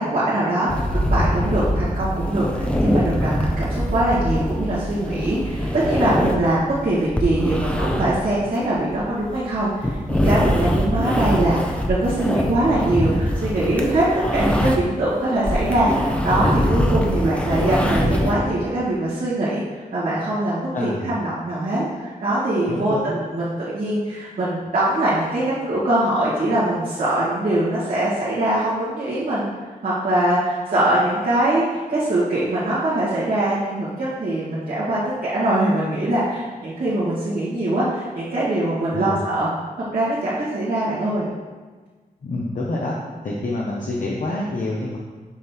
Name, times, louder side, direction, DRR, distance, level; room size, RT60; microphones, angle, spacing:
voice 1, 0.0-29.5 29.8-39.5 39.9-41.3, right 1 dB, 75° right, -12 dB, 2.3 m, -22 dB
sound 1, 0.7-15.0 15.3-18.4, equal, 10° left, 0.7 m, -23 dB
voice 2, 20.7-21.1 22.7-23.1 38.9-39.2 42.2-43.0 43.2-45.0, left 2 dB, 60° left, -4 dB, 1.0 m, -27 dB
7.3 x 5.4 x 4.5 m, 1.4 s
wide cardioid pair, 140°, 15 cm